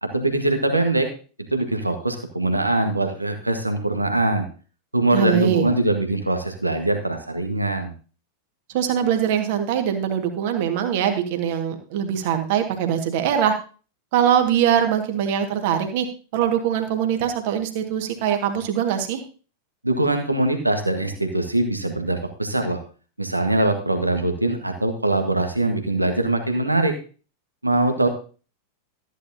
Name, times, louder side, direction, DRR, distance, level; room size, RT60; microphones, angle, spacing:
voice 1, 0.0-1.1 1.5-4.5 4.9-7.9 19.8-22.8 23.2-26.9 27.6-28.1, right 2 dB, 85° right, 5 dB, 1.5 m, -22 dB
voice 2, 5.1-5.6 8.7-13.6 14.1-16.1 16.3-19.2, right 9 dB, 50° right, 5 dB, 1.8 m, -22 dB
14.0 x 10.0 x 2.8 m, 0.38 s
figure-of-eight pair, 90°, 0 cm